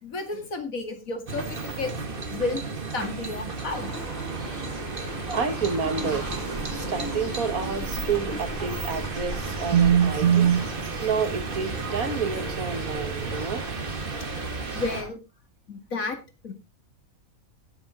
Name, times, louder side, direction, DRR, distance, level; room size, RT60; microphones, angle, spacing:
voice 1, 0.0-1.9 2.3-2.6 2.9-3.9 14.7-15.2 15.7-16.2 16.4-16.5, left 3 dB, 75° left, 7 dB, 2.7 m, -31 dB
sound 1, 1.3-15.0, right 4 dB, 40° right, 1.6 m, -34 dB
sound 2, 3.3-13.5, right 1 dB, 10° left, 5.9 m, -44 dB
sound 3, 3.7-15.1, right 1 dB, 10° right, 6.6 m, -37 dB
voice 2, 5.3-6.3 6.7-10.7 11.0-13.6, right 7 dB, 85° right, 9 dB, 2.1 m, -26 dB
17.0 x 8.0 x 3.8 m, 0.27 s
omnidirectional pair, 1.5 m